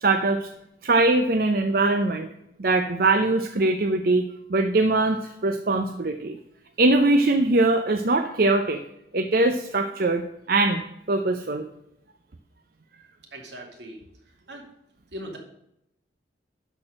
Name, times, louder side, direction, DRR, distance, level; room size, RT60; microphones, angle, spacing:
voice 1, 0.0-0.5 0.8-2.3 2.6-4.2 4.5-6.4 6.8-8.8 9.1-10.8 11.1-11.7, right 2 dB, 55° right, 6 dB, 0.7 m, -22 dB
voice 2, 13.3-14.0 14.5-14.6 15.1-15.4, equal, 80° right, 1 dB, 2.6 m, -39 dB
12.0 x 4.5 x 6.4 m, 0.80 s
head